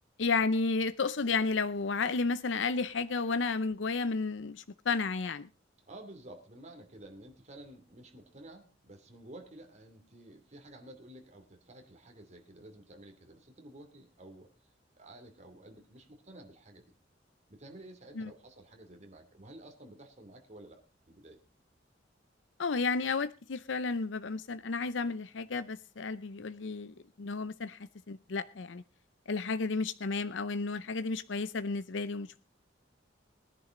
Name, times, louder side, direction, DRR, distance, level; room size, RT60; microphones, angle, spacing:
voice 1, 0.2-5.5 18.2-18.3 22.6-28.8 29.3-32.4, left 4 dB, 75° left, 14 dB, 0.6 m, -32 dB
voice 2, 5.9-14.5 15.0-16.9 17.5-20.8 21.1-21.4, right 1 dB, 40° right, 4 dB, 2.7 m, -52 dB
20.0 x 10.5 x 3.8 m, 0.31 s
head